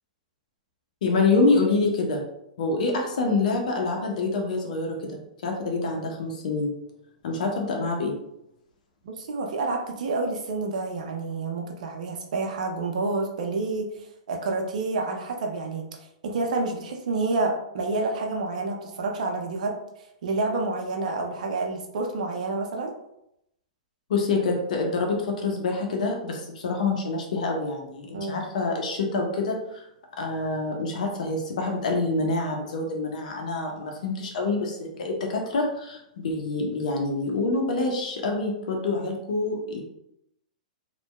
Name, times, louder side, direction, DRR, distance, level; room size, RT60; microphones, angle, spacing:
voice 1, 1.0-2.2 2.6-6.7 7.2-8.1 24.1-29.9 30.2-39.8, left 3 dB, 70° left, 1 dB, 0.6 m, -26 dB
voice 2, 9.0-15.9 16.2-19.8 20.2-22.9 28.1-28.4, right 3 dB, 70° right, 2 dB, 0.5 m, -29 dB
2.6 x 2.2 x 2.2 m, 0.80 s
hypercardioid pair, 125°, 4 cm